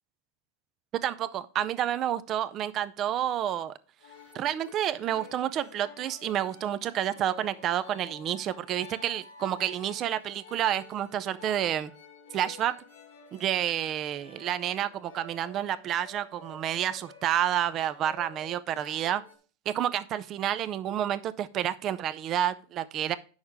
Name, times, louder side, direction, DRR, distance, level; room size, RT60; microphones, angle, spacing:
voice 1, 0.9-3.7 4.3-11.9 12.3-12.7 13.3-19.2 19.7-23.1, right 11 dB, 35° right, 14 dB, 0.5 m, -29 dB
sound 1, 4.0-19.4, left 4 dB, 85° left, 1.9 m, -50 dB
8.7 x 6.3 x 3.5 m, 0.39 s
supercardioid pair, 145°, 0 cm